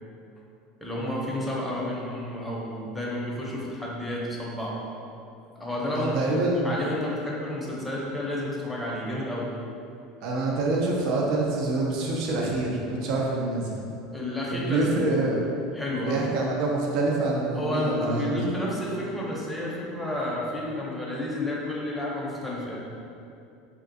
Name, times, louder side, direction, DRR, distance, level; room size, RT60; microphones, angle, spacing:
voice 1, 0.8-4.8 5.6-6.2 6.6-9.5 14.1-15.3 15.7-16.2 17.5-22.8, left 1 dB, 5° left, -5 dB, 0.6 m, -31 dB
voice 2, 5.9-6.8 10.2-13.7 14.5-15.4 16.0-18.3, right 2 dB, 60° right, -2 dB, 0.4 m, -26 dB
3.4 x 2.4 x 2.6 m, 2.6 s
supercardioid pair, 115°, 0 cm